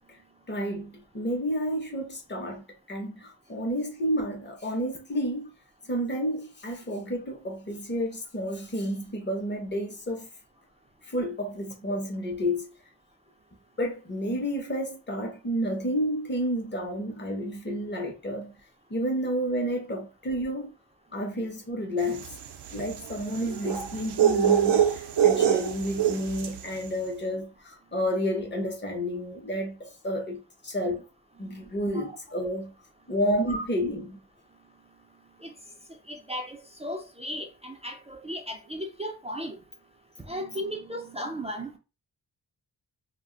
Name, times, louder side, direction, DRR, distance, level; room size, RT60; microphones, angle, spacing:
voice 1, 0.5-5.5 5.9-10.3 11.1-12.7 13.8-18.6 18.9-20.7 21.1-22.3 22.7-31.0 31.4-32.7 33.1-34.2, equal, 25° left, 0.8 m, -30 dB
sound 1, 22.1-26.7, right 9 dB, 85° right, 0.5 m, -24 dB
voice 2, 36.1-39.6 40.3-41.8, equal, 15° right, 0.3 m, -36 dB
2.4 x 2.2 x 3.7 m
wide cardioid pair, 165°, 39 cm